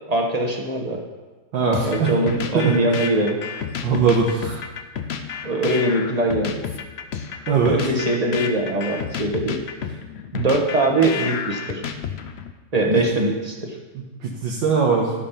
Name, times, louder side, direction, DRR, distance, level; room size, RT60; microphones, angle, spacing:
voice 1, 0.1-1.0 1.8-3.4 5.4-6.6 7.7-9.6 10.3-11.8 12.7-13.8, right 2 dB, 25° right, 1 dB, 1.0 m, -22 dB
voice 2, 1.5-2.1 2.5-2.8 3.8-4.6 7.5-7.8 13.0-13.1 13.9-15.1, right 5 dB, 80° right, -3 dB, 2.0 m, -20 dB
sound 1, 1.7-12.5, left 7 dB, 75° left, 0.6 m, -31 dB
13.0 x 5.3 x 5.7 m, 1.3 s
omnidirectional pair, 2.0 m